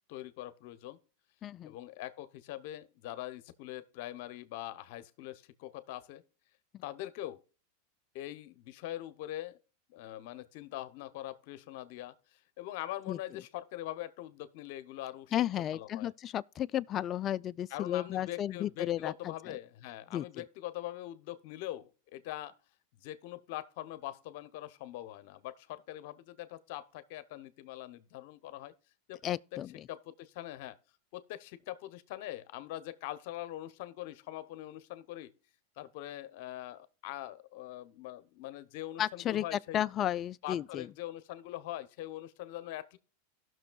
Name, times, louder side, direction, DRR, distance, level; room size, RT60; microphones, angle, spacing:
voice 1, 0.1-1.0 1.6-6.2 6.8-7.4 8.1-9.6 9.9-15.3 15.7-16.1 17.7-22.5 23.0-28.7 29.1-29.4 29.9-30.8 31.1-35.3 35.8-39.8 40.4-43.0, left 14 dB, 60° left, 0.8 m, -43 dB
voice 2, 1.4-1.7 13.1-13.2 15.3-19.6 20.1-20.2 29.2-29.9 39.0-40.9, left 11 dB, 35° left, 0.3 m, -33 dB
18.0 x 6.2 x 2.3 m
hypercardioid pair, 120°, 0 cm